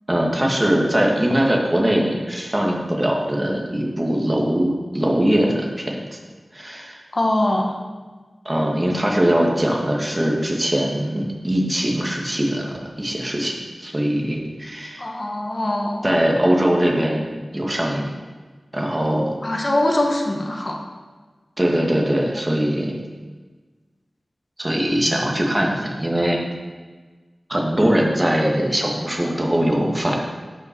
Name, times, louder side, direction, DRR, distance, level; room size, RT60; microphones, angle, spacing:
voice 1, 0.1-6.0 6.5-7.0 8.5-15.0 16.0-18.0 18.7-19.4 21.6-22.9 24.6-26.4 27.5-30.2, equal, 20° right, -1 dB, 1.9 m, -21 dB
voice 2, 7.1-7.8 15.0-16.1 19.4-20.8, left 1 dB, 40° left, 1 dB, 1.4 m, -22 dB
12.0 x 5.7 x 4.7 m, 1.4 s
wide cardioid pair, 75°, 0 cm